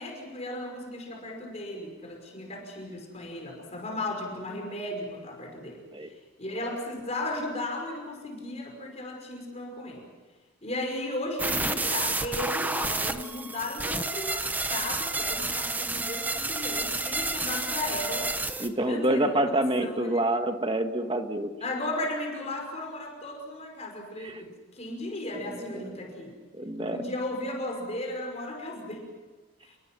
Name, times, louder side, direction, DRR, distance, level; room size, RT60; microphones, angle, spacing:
voice 1, 0.0-10.1 10.6-18.3 18.8-20.3 21.6-26.4 26.8-29.1 29.6-29.8, left 1 dB, 30° left, 2 dB, 5.5 m, -35 dB
sound 1, 11.4-18.7, right 2 dB, 10° right, 0.9 m, -30 dB
voice 2, 18.6-21.5 24.2-24.4 25.4-25.9 26.6-27.0, right 1 dB, 25° right, 6 dB, 1.5 m, -27 dB
29.0 x 22.5 x 6.2 m, 1.3 s
head